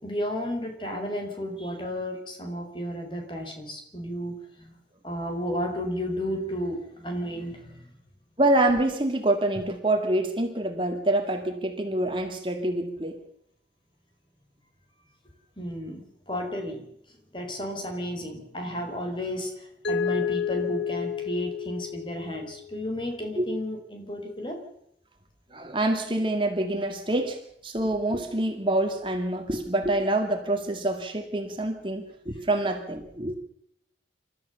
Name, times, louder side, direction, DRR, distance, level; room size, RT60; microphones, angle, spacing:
voice 1, 0.0-4.8 5.0-7.9 15.6-16.8 17.1-24.6, equal, 30° left, 4 dB, 4.7 m, -33 dB
voice 2, 8.4-13.2 23.4-23.5 25.5-33.3, right 1 dB, 30° right, 4 dB, 2.2 m, -26 dB
Mallet percussion, 19.8-22.7, left 7 dB, 75° left, 2.4 m, -30 dB
28.5 x 14.0 x 6.9 m, 0.75 s
head